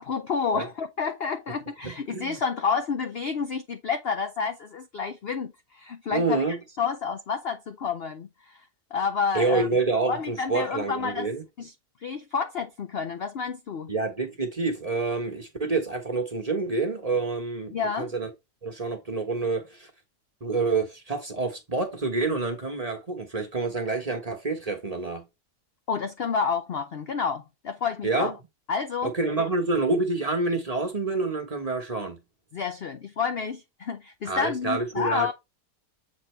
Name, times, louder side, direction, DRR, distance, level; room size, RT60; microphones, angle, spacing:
voice 1, 0.0-8.7 8.9-9.7 10.1-11.3 11.6-11.7 12.0-13.9 17.7-18.1 25.9-28.3 28.7-29.1 29.4-29.5 32.5-35.3, left 6 dB, 60° left, 0.6 m, -29 dB
voice 2, 1.8-2.4 6.1-6.6 9.3-11.4 13.9-18.3 18.6-19.9 20.4-25.3 28.0-28.3 29.0-32.2 34.2-35.3, right 3 dB, 25° right, 1.1 m, -27 dB
7.4 x 4.1 x 3.2 m
omnidirectional pair, 1.8 m